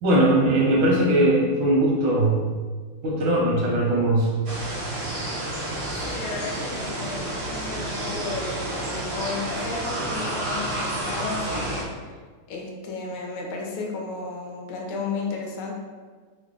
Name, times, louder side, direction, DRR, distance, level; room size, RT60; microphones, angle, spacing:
voice 1, 0.0-2.4 3.0-4.4, right 1 dB, 85° right, -4 dB, 1.7 m, -20 dB
sound 1, 4.5-11.8, right 1 dB, 60° right, 0.7 m, -30 dB
voice 2, 6.0-12.1 12.5-15.7, left 4 dB, 75° left, -1 dB, 1.1 m, -33 dB
3.8 x 2.1 x 3.7 m, 1.5 s
omnidirectional pair, 2.2 m